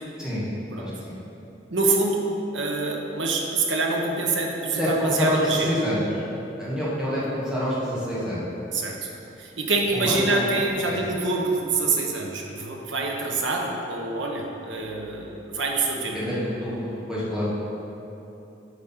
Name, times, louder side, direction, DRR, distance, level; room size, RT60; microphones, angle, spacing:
voice 1, 0.7-1.1 4.7-6.2 6.6-8.5 9.9-10.5 10.8-11.0 16.1-17.5, equal, 5° right, -9 dB, 2.0 m, -27 dB
voice 2, 1.7-2.3 2.5-5.7 8.7-9.1 9.4-16.2, right 3 dB, 85° right, 0 dB, 1.1 m, -26 dB
8.3 x 5.3 x 5.8 m, 2.9 s
head